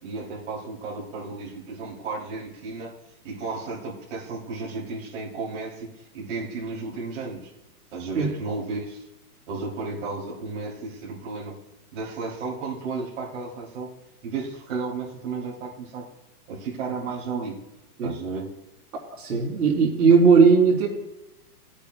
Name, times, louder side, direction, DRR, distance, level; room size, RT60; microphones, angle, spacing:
voice 1, 0.0-2.9 3.2-5.9 6.1-7.5 7.9-9.1 9.5-11.6 11.9-13.9 14.2-16.1 16.5-17.6 18.0-18.5, right 4 dB, 50° right, -6 dB, 3.1 m, -33 dB
voice 2, 19.2-20.9, right 5 dB, 80° right, -2 dB, 3.5 m, -17 dB
20.5 x 8.3 x 2.3 m, 0.98 s
hypercardioid pair, 175°, 46 cm